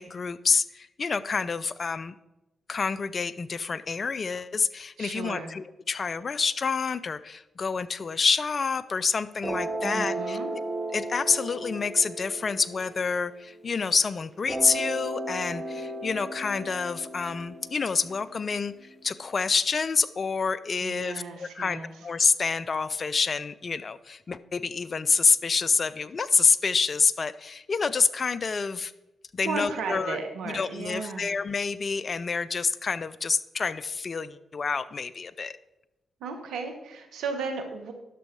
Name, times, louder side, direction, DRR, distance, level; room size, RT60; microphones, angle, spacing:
voice 1, 0.0-2.1 2.7-10.4 10.9-28.9 29.3-30.2 30.5-35.5, left 5 dB, 50° left, 16 dB, 0.5 m, -27 dB
voice 2, 5.0-5.5 9.8-10.5 20.8-21.9 29.4-31.3 36.2-37.9, right 5 dB, 75° right, 5 dB, 1.3 m, -35 dB
sound 1, 9.4-13.8 14.5-19.4, right 1 dB, 20° right, 2.1 m, -35 dB
11.0 x 6.3 x 4.7 m, 0.95 s
hypercardioid pair, 40°, 0 cm